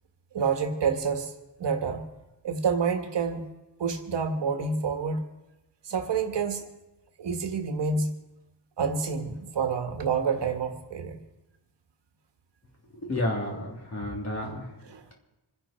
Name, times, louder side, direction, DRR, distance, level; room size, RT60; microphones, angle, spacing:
voice 1, 0.3-1.3 1.6-2.0 2.4-3.4 3.8-5.2 5.8-6.7 7.2-8.1 8.8-11.2 13.5-13.6 14.8-15.0, right 5 dB, 65° right, 6 dB, 1.7 m, -28 dB
voice 2, 13.1-14.6, left 1 dB, 35° left, -1 dB, 3.4 m, -30 dB
26.5 x 11.0 x 4.5 m, 0.99 s
wide cardioid pair, 165°, 45 cm